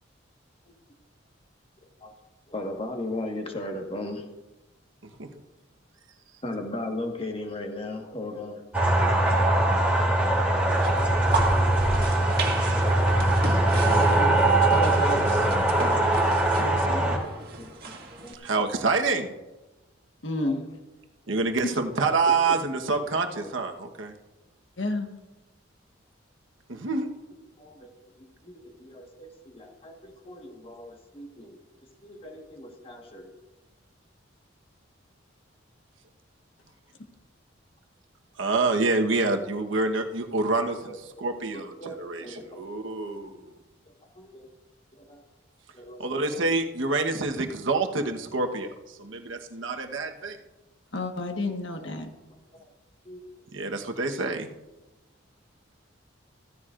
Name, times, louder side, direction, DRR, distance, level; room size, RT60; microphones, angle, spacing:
voice 1, 2.5-4.3 6.4-8.6 17.6-17.7 18.2-18.7 20.3-20.5 21.3-21.4 23.4-23.5 23.8-23.9 27.6-31.6 32.0-33.3 40.7-42.6 44.1-44.5 44.9-45.2 45.7-46.4 52.5-52.6 53.0-53.2, left 1 dB, 30° left, 2 dB, 1.5 m, -38 dB
sound 1, 8.7-17.2, right 1 dB, 5° right, 2.9 m, -22 dB
sound 2, 10.7-18.3, right 3 dB, 50° right, 1.8 m, -34 dB
voice 2, 13.8-15.5 16.6-17.3 20.2-20.7 21.6-21.7 24.8-25.1 50.9-52.1, left 2 dB, 70° left, 4 dB, 1.5 m, -32 dB
voice 3, 18.3-19.3 21.3-24.1 26.7-27.1 38.4-43.5 46.0-50.4 53.5-54.5, right 3 dB, 80° right, 4 dB, 1.2 m, -27 dB
15.0 x 14.5 x 2.5 m, 1.0 s
head